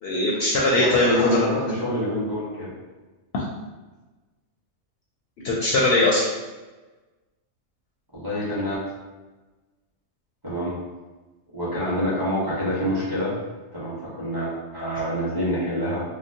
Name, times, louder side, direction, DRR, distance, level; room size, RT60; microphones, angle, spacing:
voice 1, 0.0-1.5 3.3-3.4 5.4-6.3, left 2 dB, 65° left, -4 dB, 0.7 m, -21 dB
voice 2, 0.7-2.7 8.1-8.8 10.4-10.7 11.5-13.4 13.7-16.0, equal, 20° right, -9 dB, 0.9 m, -26 dB
3.7 x 2.0 x 2.7 m, 1.2 s
omnidirectional pair, 1.3 m